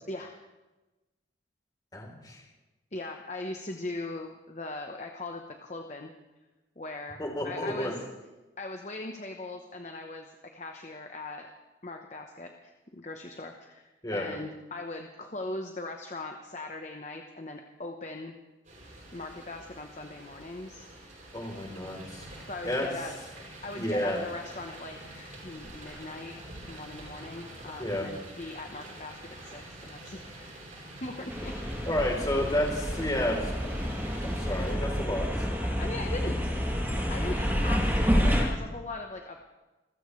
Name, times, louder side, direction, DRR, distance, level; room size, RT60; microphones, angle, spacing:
voice 1, 1.9-2.4 7.2-7.9 14.0-14.4 21.3-22.3 22.6-22.9 23.8-24.2 27.8-28.1 31.9-33.4 33.6-33.8 34.2-35.5, left 1 dB, 20° left, 0 dB, 3.6 m, -31 dB
voice 2, 2.9-6.1 6.8-7.9 8.6-11.5 11.8-18.4 19.1-20.8 22.5-23.2 23.6-26.4 26.7-30.3 31.0-31.5 35.8-36.7 37.1-39.4, left 2 dB, 35° left, 3 dB, 1.0 m, -40 dB
sound 1, 18.6-34.7, right 1 dB, 40° right, 7.6 m, -46 dB
sound 2, 31.3-38.4, equal, 10° right, 2.8 m, -29 dB
27.5 x 15.5 x 3.3 m, 1.1 s
head